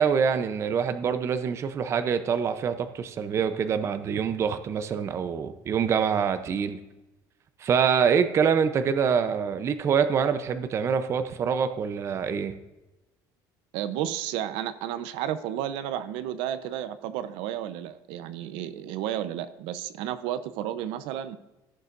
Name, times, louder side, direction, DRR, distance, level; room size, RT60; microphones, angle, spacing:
voice 1, 0.0-6.8 7.6-12.5, right 7 dB, 30° right, 10 dB, 0.6 m, -25 dB
voice 2, 13.7-21.4, right 11 dB, 85° right, 12 dB, 0.7 m, -32 dB
16.0 x 6.9 x 2.5 m, 1.0 s
cardioid pair, 155°, 9 cm